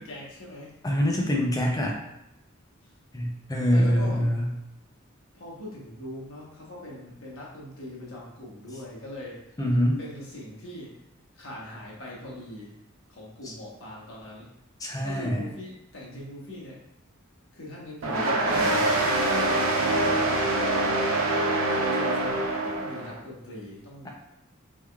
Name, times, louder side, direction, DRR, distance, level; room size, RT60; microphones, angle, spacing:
voice 1, 0.0-0.7 3.7-4.2 5.3-9.4 10.0-10.9 11.3-12.7 13.1-14.5 15.0-16.8 17.5-21.0 21.7-24.1, left 1 dB, 70° left, -4 dB, 1.0 m, -41 dB
voice 2, 0.8-2.0 3.1-4.5 9.6-10.0 13.4-13.5 14.8-15.4, equal, 20° left, 0 dB, 0.5 m, -24 dB
sound 1, 18.0-23.1, right 2 dB, 90° right, 0.7 m, -24 dB
3.5 x 3.3 x 2.3 m, 0.85 s
head